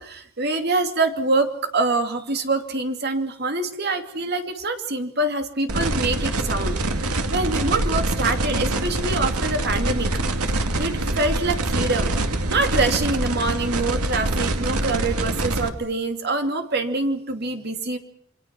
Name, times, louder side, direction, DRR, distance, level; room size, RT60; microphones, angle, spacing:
voice 1, 0.0-6.8 7.0-10.1 10.8-12.1 12.5-18.0, right 2 dB, 45° right, 6 dB, 2.6 m, -25 dB
sound 1, 5.7-15.7, right 2 dB, 90° right, 2.2 m, -24 dB
29.0 x 24.5 x 6.0 m, 0.63 s
head